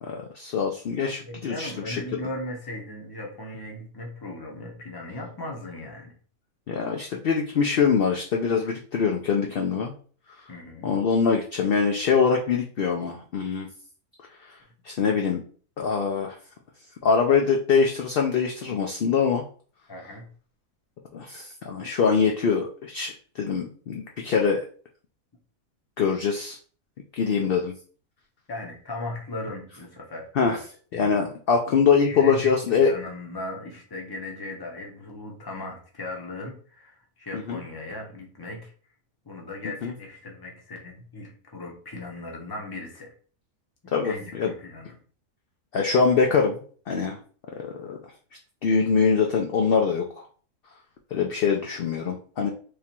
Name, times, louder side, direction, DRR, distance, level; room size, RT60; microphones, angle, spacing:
voice 1, 0.0-2.2 6.7-9.9 10.8-13.7 14.8-15.4 15.8-16.4 17.0-19.4 21.1-24.7 26.0-26.6 27.2-27.7 30.4-30.6 30.9-32.9 37.3-37.6 39.8-39.9 43.9-44.5 45.7-46.6 46.9-47.2 47.6-48.0 48.6-50.3 51.1-52.5, left 5 dB, 65° left, 1 dB, 0.6 m, -23 dB
voice 2, 1.2-6.1 10.5-10.9 19.9-20.3 28.5-30.6 30.9-31.2 32.1-38.7 39.2-43.1 44.0-45.0, left 2 dB, 20° left, 1 dB, 0.7 m, -37 dB
3.5 x 2.4 x 4.3 m, 0.43 s
omnidirectional pair, 1.5 m